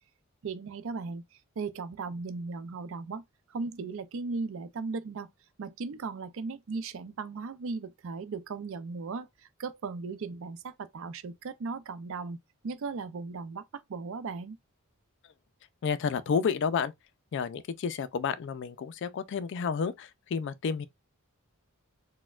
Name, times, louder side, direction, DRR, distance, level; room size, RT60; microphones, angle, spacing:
voice 1, 0.4-1.2 1.6-3.2 3.5-5.3 5.6-12.4 12.6-14.6, right 4 dB, 65° right, 0.4 m, -37 dB
voice 2, 15.8-16.9 17.3-20.9, left 6 dB, 60° left, 0.3 m, -30 dB
4.1 x 2.1 x 2.3 m
head